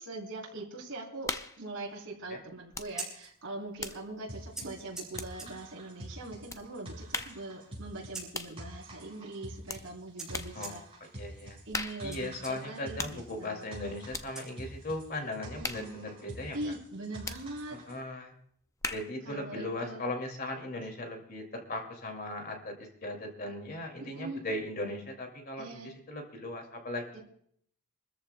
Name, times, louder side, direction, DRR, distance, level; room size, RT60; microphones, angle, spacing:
voice 1, 0.0-1.3 1.6-10.8 11.7-13.6 15.6-15.9 16.5-17.8 19.2-20.0 24.0-24.4 25.6-25.9 27.1-27.2, right 2 dB, 60° right, -3 dB, 3.5 m, -42 dB
sound 1, 1.2-1.7 2.7-3.0 3.3-5.7 6.5-6.7 7.1-7.5 8.3-8.6 9.7-9.9 10.3-10.6 11.7-12.2 13.0-13.3 14.1-14.3 15.6-16.0 17.2-17.5 18.8-19.2, left 3 dB, 15° left, 0.5 m, -39 dB
Scissors, 2.7-15.1, right 3 dB, 5° right, 5.4 m, -50 dB
sound 2, 4.3-18.0, right 1 dB, 25° right, 5.5 m, -47 dB
voice 2, 10.5-11.6 12.0-16.7 17.7-18.3 18.9-27.2, left 1 dB, 45° left, 3 dB, 2.3 m, -38 dB
27.5 x 14.0 x 2.2 m, 0.64 s
head